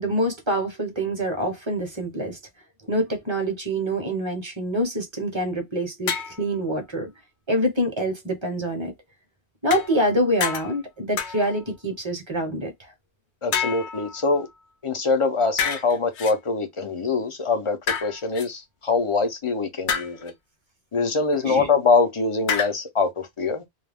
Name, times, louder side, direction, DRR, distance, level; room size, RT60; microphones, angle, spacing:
voice 1, 0.0-2.4 2.9-7.1 7.5-8.9 9.6-12.7 21.3-21.7, equal, 30° right, 0.7 m, -26 dB
sound 1, 6.1-6.5 9.7-10.1 10.4-10.8 11.2-11.7 13.5-14.6 15.6-16.3 17.9-18.5 19.9-20.3 22.5-22.7, left 7 dB, 85° left, 0.9 m, -28 dB
voice 2, 13.4-14.5 14.8-20.3 20.9-23.7, left 4 dB, 40° left, 0.5 m, -24 dB
2.3 x 2.1 x 3.4 m
omnidirectional pair, 1.1 m